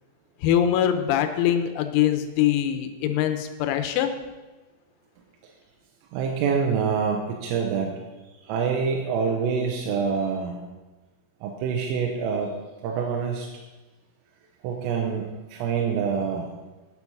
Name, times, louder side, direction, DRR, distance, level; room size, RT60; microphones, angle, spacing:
voice 1, 0.4-4.1, left 10 dB, 90° left, 8 dB, 3.6 m, -23 dB
voice 2, 6.1-8.0 8.4-10.6 11.4-12.5 12.8-13.5 14.6-16.5, right 6 dB, 90° right, 0 dB, 3.5 m, -26 dB
10.0 x 8.2 x 6.0 m, 1.2 s
omnidirectional pair, 6.0 m